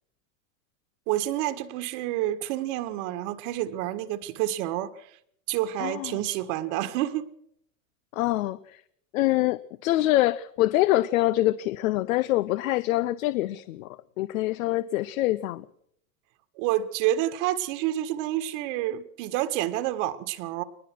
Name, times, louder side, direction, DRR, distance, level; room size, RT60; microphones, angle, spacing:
voice 1, 1.1-5.1 5.5-7.3 16.5-20.6, right 13 dB, 60° right, 1.7 m, -28 dB
voice 2, 5.8-6.2 8.1-8.8 9.1-15.6, left 16 dB, 75° left, 0.9 m, -25 dB
22.0 x 20.0 x 6.2 m
supercardioid pair, 120°, 41 cm